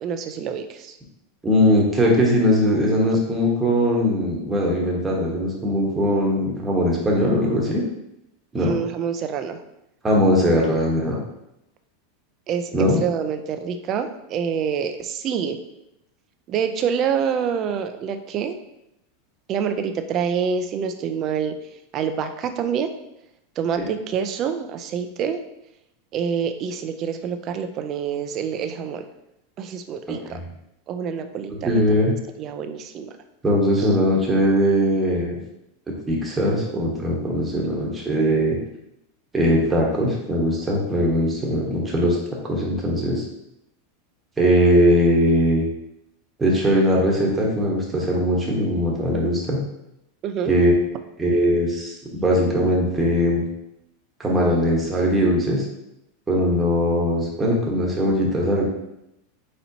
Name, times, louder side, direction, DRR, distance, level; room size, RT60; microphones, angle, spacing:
voice 1, 0.0-0.9 8.6-9.6 12.5-15.6 16.5-18.6 19.5-21.5 21.9-22.9 23.6-25.4 26.1-29.1 29.6-30.4 30.9-33.1 33.8-33.9 50.2-50.5, right 7 dB, 35° right, 8 dB, 0.4 m, -27 dB
voice 2, 1.4-7.8 8.5-8.8 10.0-11.2 12.7-13.0 23.8-23.9 30.3-30.4 31.6-32.1 33.4-35.4 36.1-38.6 39.3-42.2 42.4-43.2 44.4-45.6 46.4-49.6 50.5-50.7 51.2-53.4 54.2-55.6 56.3-58.7, equal, 10° right, -3 dB, 1.1 m, -20 dB
4.3 x 4.1 x 2.8 m, 0.84 s
supercardioid pair, 140°, 0 cm